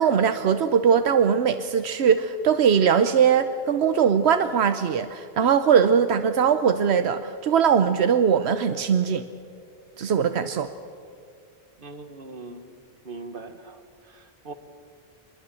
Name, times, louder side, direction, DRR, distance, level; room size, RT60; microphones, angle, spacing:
voice 1, 0.0-9.2 10.0-10.7, right 7 dB, 80° right, 10 dB, 1.0 m, -21 dB
voice 2, 11.8-12.8 13.0-13.8 14.1-14.5, right 3 dB, 55° right, 8 dB, 1.7 m, -40 dB
24.0 x 21.0 x 7.6 m, 2.3 s
omnidirectional pair, 1.1 m